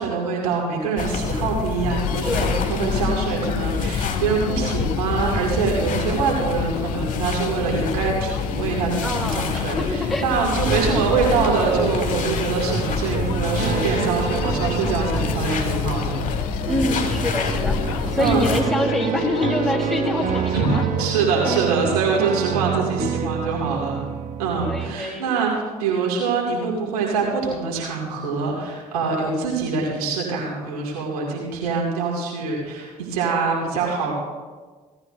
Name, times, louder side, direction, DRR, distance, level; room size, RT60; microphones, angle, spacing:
voice 1, 0.0-16.3 18.2-18.6 20.5-20.7 21.0-24.0 24.4-34.1, right 4 dB, 85° right, -2 dB, 2.3 m, -24 dB
sound 1, 1.0-18.6, left 5 dB, 45° left, 1.9 m, -27 dB
Human voice, 1.9-21.7, left 13 dB, 80° left, 0.4 m, -34 dB
voice 2, 2.3-2.6 9.0-9.8 10.1-10.3 16.6-17.8 18.1-20.9 21.2-21.3 24.6-25.3, left 1 dB, ahead, -2 dB, 3.7 m, -25 dB
sound 2, 10.7-25.0, right 8 dB, 45° right, 0.9 m, -28 dB
17.0 x 13.0 x 2.6 m, 1.4 s
hypercardioid pair, 50°, 18 cm